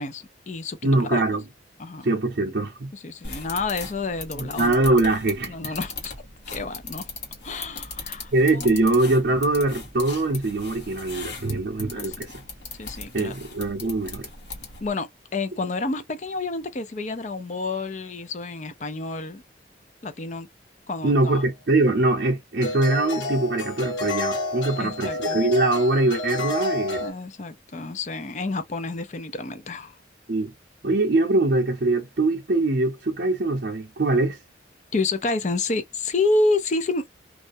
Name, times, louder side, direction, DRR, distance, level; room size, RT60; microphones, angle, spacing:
voice 1, 0.0-0.8 1.1-1.2 1.8-2.1 3.0-4.8 5.5-6.1 6.5-7.1 7.4-8.8 11.9-12.2 12.8-13.3 14.8-19.4 20.0-20.5 20.9-21.4 24.8-25.4 27.0-29.9 34.9-37.0, left 3 dB, 40° left, 0.4 m, -29 dB
voice 2, 0.8-1.4 2.0-2.9 4.3-5.7 8.3-12.3 13.1-14.3 21.0-27.1 30.3-30.5 30.8-34.4, right 2 dB, 55° right, 0.6 m, -23 dB
sound 1, 3.2-14.9, left 4 dB, 65° left, 1.1 m, -38 dB
sound 2, 21.2-21.4 22.6-27.1, left 2 dB, 85° left, 1.2 m, -30 dB
2.4 x 2.1 x 2.6 m
head